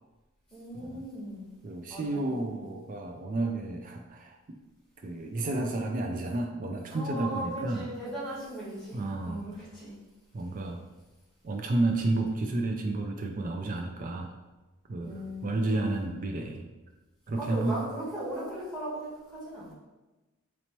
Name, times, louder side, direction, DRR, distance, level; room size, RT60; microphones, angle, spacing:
voice 1, 0.5-1.5 1.9-2.5 6.9-9.9 15.0-16.0 17.4-19.7, right 1 dB, 5° left, -9 dB, 1.4 m, -38 dB
voice 2, 1.6-4.4 5.0-7.8 8.9-9.4 10.3-10.8 11.4-14.3 14.9-16.7 17.3-17.8, right 2 dB, 40° right, 3 dB, 0.3 m, -31 dB
4.2 x 2.8 x 3.0 m, 1.1 s
head